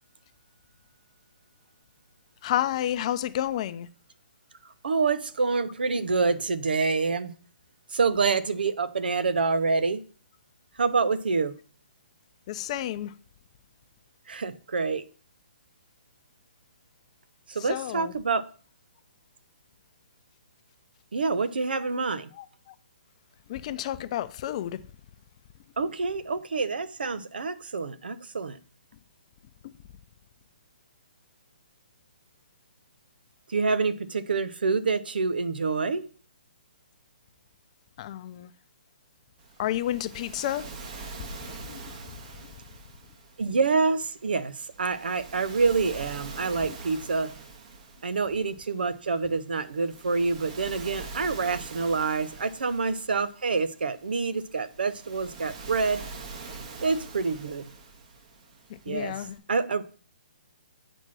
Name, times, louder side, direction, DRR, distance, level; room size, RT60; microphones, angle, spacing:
voice 1, 2.4-3.9 12.5-13.1 17.6-18.1 22.3-22.7 23.5-24.8 29.6-29.7 38.0-38.5 39.6-40.7 41.2-41.3 41.6-41.9 46.6-46.7 58.9-59.4, left 12 dB, 40° left, 0.6 m, -31 dB
voice 2, 4.8-7.3 7.9-10.0 10.8-11.5 14.3-15.0 17.5-18.4 21.1-22.3 25.8-28.6 33.5-36.1 43.4-47.3 48.0-56.0 56.8-57.7 58.9-59.2 59.5-60.0, right 4 dB, 75° right, 0.8 m, -27 dB
Waves surf, 39.4-59.4, right 4 dB, 45° right, 1.6 m, -44 dB
8.0 x 4.4 x 6.2 m
hypercardioid pair, 140°, 5 cm